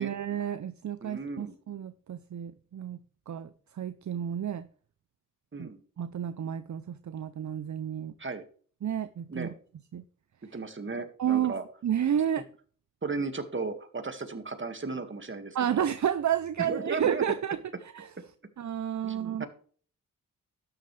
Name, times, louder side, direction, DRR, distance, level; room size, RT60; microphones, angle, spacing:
voice 1, 0.0-3.0 3.3-3.5 3.8-4.7 5.6-5.7 6.0-8.1 8.8-9.5 9.9-10.0 11.2-12.4 15.5-17.6 17.9-18.1 18.6-19.4, right 9 dB, 60° right, 0.7 m, -31 dB
voice 2, 1.0-1.5 5.5-5.8 8.2-8.4 9.3-9.5 10.5-11.6 13.0-15.9 16.6-17.2 19.0-19.5, right 4 dB, 35° right, 2.0 m, -35 dB
12.5 x 9.7 x 3.3 m
wide cardioid pair, 85°, 33 cm